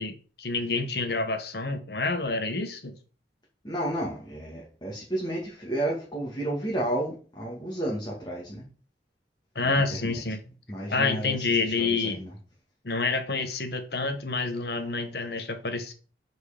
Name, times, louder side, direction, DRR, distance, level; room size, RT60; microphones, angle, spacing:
voice 1, 0.0-2.9 9.5-10.4 10.9-12.2 12.8-15.9, left 3 dB, 60° left, 1.2 m, -28 dB
voice 2, 3.6-8.6 9.6-10.2 10.7-12.3, right 1 dB, 25° left, 2.0 m, -32 dB
8.4 x 4.7 x 5.0 m
head